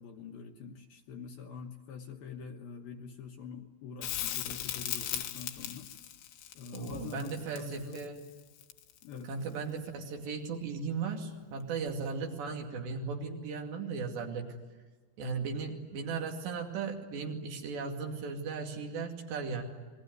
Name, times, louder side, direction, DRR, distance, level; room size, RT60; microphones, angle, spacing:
voice 1, 0.0-5.9 6.5-8.0 9.0-9.3, left 6 dB, 65° left, 3 dB, 2.6 m, -45 dB
Crackle, 4.0-9.1 11.9-12.0, left 11 dB, 85° left, 3.7 m, -38 dB
voice 2, 6.7-8.3 9.3-14.5 15.2-19.6, right 5 dB, 70° right, 2 dB, 4.5 m, -37 dB
28.5 x 21.5 x 9.5 m, 1.3 s
omnidirectional pair, 5.3 m